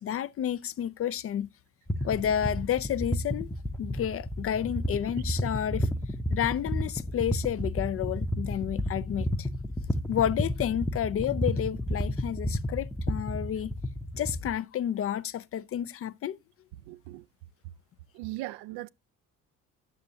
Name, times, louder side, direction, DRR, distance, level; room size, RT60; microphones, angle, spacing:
voice 1, 0.0-1.5 2.0-3.5 3.8-5.9 6.3-9.5 10.1-13.7 14.2-16.4, left 10 dB, 35° left, 0.4 m, -30 dB
sound 1, 1.9-14.5, left 1 dB, 5° left, 0.7 m, -31 dB
voice 2, 16.9-17.2 18.1-18.9, right 17 dB, 65° right, 0.5 m, -38 dB
10.0 x 6.7 x 2.7 m
hypercardioid pair, 55°, 42 cm